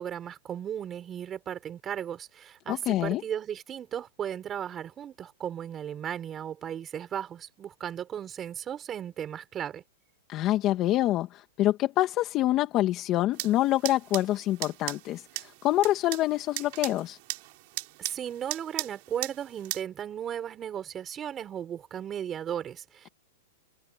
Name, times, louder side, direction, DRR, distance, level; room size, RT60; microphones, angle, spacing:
voice 1, 0.0-9.8 18.0-23.1, right 9 dB, 25° right, 5.8 m, -36 dB
voice 2, 2.7-3.2 10.3-17.2, left 15 dB, 35° left, 2.6 m, -26 dB
sound 1, 13.3-19.8, right 26 dB, 50° right, 6.2 m, -38 dB
hypercardioid pair, 135°, 0 cm